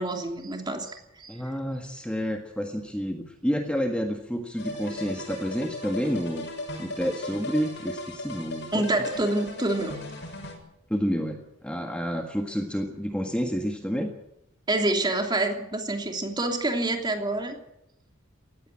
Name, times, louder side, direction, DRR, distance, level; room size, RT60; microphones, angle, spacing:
voice 1, 0.0-1.3 8.7-10.0 14.7-17.6, right 2 dB, 20° right, 4 dB, 3.1 m, -27 dB
voice 2, 1.3-6.5 6.8-8.8 10.9-14.1, equal, 5° left, 3 dB, 1.6 m, -29 dB
sound 1, 4.6-10.6, left 1 dB, 60° left, 6.5 m, -37 dB
18.5 x 15.5 x 9.8 m, 0.83 s
head